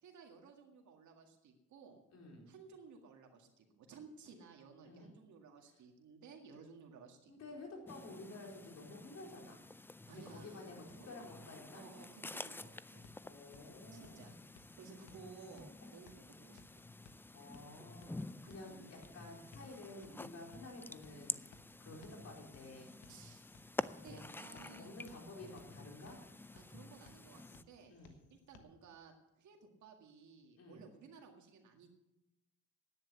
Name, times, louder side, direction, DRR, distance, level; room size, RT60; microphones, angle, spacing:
voice 1, 0.0-2.0 2.5-7.3 10.1-10.7 11.0-11.1 11.7-13.1 13.9-14.4 14.8-16.8 18.6-18.9 21.9-22.1 23.1-23.4 23.8-24.9 26.5-31.9, right 5 dB, 70° right, 2 dB, 2.0 m, -57 dB
voice 2, 2.1-2.5 4.8-5.1 7.3-9.6 10.1-11.9 13.2-14.3 15.9-16.0 17.3-21.5 21.8-22.9 24.0-24.2 24.5-26.2 27.9-28.2 30.6-30.8, left 2 dB, 55° left, 0 dB, 4.2 m, -52 dB
sound 1, 7.9-27.6, left 2 dB, 10° left, 0.3 m, -49 dB
sound 2, 13.0-28.6, left 4 dB, 85° left, 1.4 m, -65 dB
10.5 x 9.4 x 8.1 m, 0.95 s
cardioid pair, 90°, 30 cm